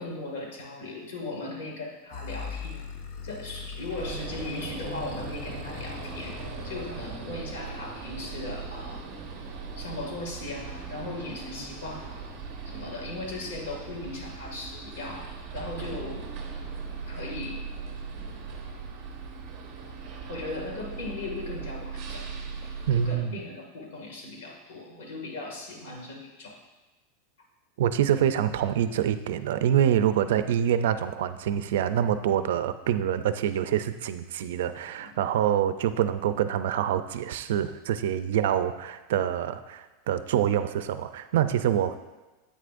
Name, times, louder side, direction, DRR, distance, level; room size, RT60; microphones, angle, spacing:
voice 1, 0.0-2.9 3.2-9.1 9.8-12.3 12.7-16.2 17.1-17.6 20.3-22.3 22.9-26.6 34.9-35.2 38.4-38.6, left 2 dB, 70° left, 0 dB, 2.1 m, -38 dB
sound 1, 2.1-7.3, left 6 dB, 40° left, 0.4 m, -40 dB
sound 2, 4.0-23.2, right 5 dB, 30° right, 1.2 m, -39 dB
voice 2, 22.9-23.4 27.8-42.0, right 10 dB, 70° right, 11 dB, 0.4 m, -26 dB
9.9 x 8.5 x 2.6 m, 1.1 s
supercardioid pair, 180°, 0 cm